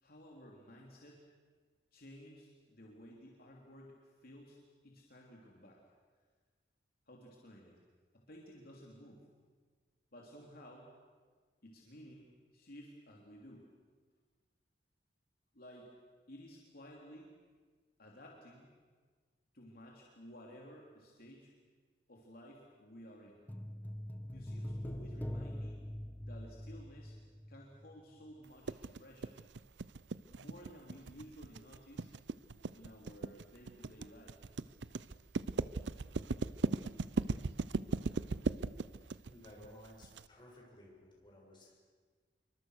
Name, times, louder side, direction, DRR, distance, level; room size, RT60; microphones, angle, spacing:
voice 1, 0.0-1.2 1.9-5.8 7.1-7.8 8.1-9.3 10.1-10.9 11.6-13.7 15.5-15.9 16.3-17.3 18.0-18.7 19.5-21.5 22.1-23.4 24.3-25.8 26.2-27.2 27.5-29.4 30.3-32.1 32.7-34.4, equal, 55° left, -1 dB, 3.3 m, -55 dB
sound 1, 23.5-27.9 28.2-28.3, equal, 10° left, 1.0 m, -43 dB
sound 2, 28.7-40.2, right 3 dB, 80° right, 0.6 m, -37 dB
voice 2, 39.0-41.8, left 1 dB, 25° left, -2 dB, 7.4 m, -57 dB
27.5 x 24.0 x 6.5 m, 1.5 s
head